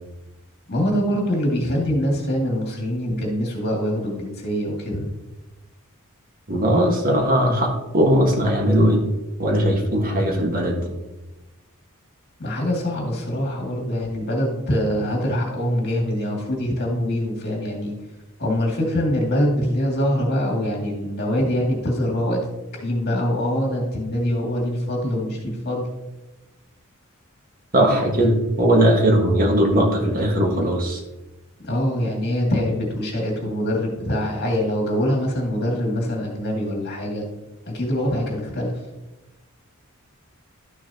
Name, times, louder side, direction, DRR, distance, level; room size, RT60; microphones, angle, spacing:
voice 1, 0.7-5.1 12.4-17.9 18.4-22.4 22.7-25.9 31.6-37.2 37.7-38.8, equal, 50° left, -1 dB, 2.3 m, -24 dB
voice 2, 6.5-9.0 9.4-10.9 27.7-31.0, right 1 dB, 40° right, 1 dB, 1.5 m, -19 dB
12.0 x 6.6 x 2.9 m, 1.0 s
head